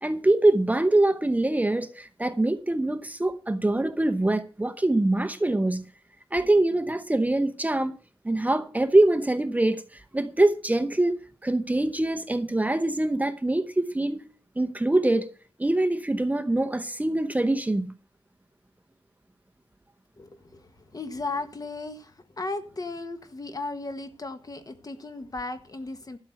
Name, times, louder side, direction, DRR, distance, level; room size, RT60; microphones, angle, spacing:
voice 1, 0.0-5.9 6.3-8.0 8.2-14.3 14.6-15.3 15.6-17.9, right 2 dB, 15° right, 0.8 m, -24 dB
voice 2, 20.2-26.2, left 3 dB, 40° left, 1.4 m, -36 dB
12.5 x 6.0 x 7.8 m
wide cardioid pair, 90°, 10 cm